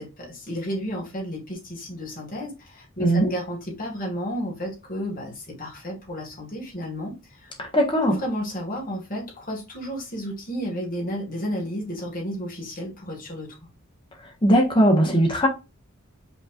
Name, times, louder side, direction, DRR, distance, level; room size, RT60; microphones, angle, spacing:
voice 1, 0.0-7.5 8.1-13.6, equal, 40° left, 1.8 m, -32 dB
voice 2, 7.7-8.1 14.4-15.5, equal, 20° left, 1.2 m, -18 dB
5.2 x 3.1 x 2.5 m
head